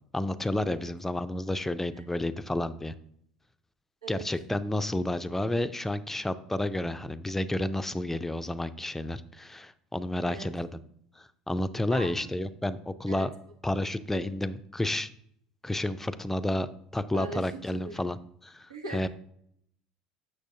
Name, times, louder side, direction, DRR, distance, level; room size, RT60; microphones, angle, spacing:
voice 1, 0.1-2.9 4.1-10.7 11.2-13.3 13.6-15.1 15.6-18.2 18.4-19.1, left 1 dB, 10° left, 12 dB, 0.4 m, -31 dB
voice 2, 11.9-12.3 13.1-13.3 14.1-14.2 17.1-18.0 18.7-19.1, right 3 dB, 90° right, 3 dB, 0.8 m, -40 dB
7.2 x 6.2 x 2.7 m, 0.70 s
hypercardioid pair, 70°, 3 cm